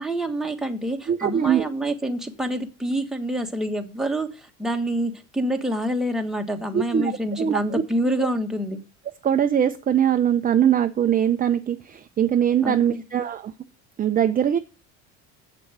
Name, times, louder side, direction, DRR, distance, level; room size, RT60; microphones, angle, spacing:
voice 1, 0.0-8.8 12.6-13.0, right 1 dB, ahead, 3 dB, 1.4 m, -27 dB
voice 2, 1.1-1.7 6.7-7.1 7.4-7.8 8.2-8.3 9.2-13.5 14.0-14.6, right 9 dB, 25° right, 7 dB, 0.6 m, -21 dB
7.8 x 7.0 x 6.1 m, 0.31 s
cardioid pair, 115°, 32 cm